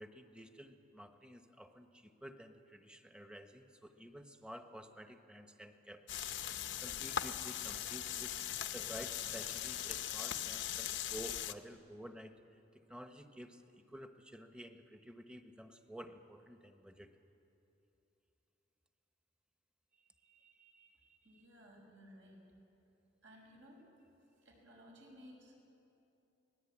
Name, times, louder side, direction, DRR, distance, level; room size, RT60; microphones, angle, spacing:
voice 1, 0.0-6.2 6.8-8.3 8.7-12.4 12.9-17.1 20.2-21.4, equal, 5° right, 6 dB, 1.0 m, -52 dB
sound 1, 6.1-11.5, left 10 dB, 65° left, 0.8 m, -40 dB
voice 2, 21.2-22.4 23.2-23.9 24.4-25.6, equal, 75° right, -1 dB, 6.4 m, -58 dB
24.5 x 19.0 x 8.6 m, 2.9 s
head